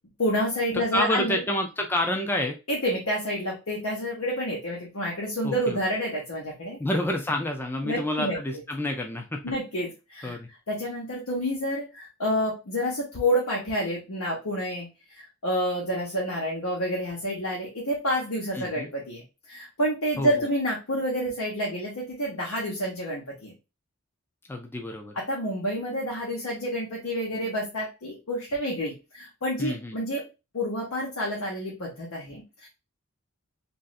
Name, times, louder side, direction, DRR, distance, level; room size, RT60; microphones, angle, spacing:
voice 1, 0.2-1.4 2.7-6.8 7.8-8.4 9.4-10.4 10.7-14.9 15.1-23.5 25.1-30.2 30.5-32.7, equal, 80° left, -4 dB, 1.0 m, -29 dB
voice 2, 0.9-2.6 5.4-5.8 6.8-9.4 10.2-10.5 18.5-18.9 20.2-20.3 24.5-25.1 29.6-30.0, left 1 dB, 10° left, 3 dB, 0.3 m, -28 dB
3.1 x 2.6 x 2.5 m, 0.27 s
head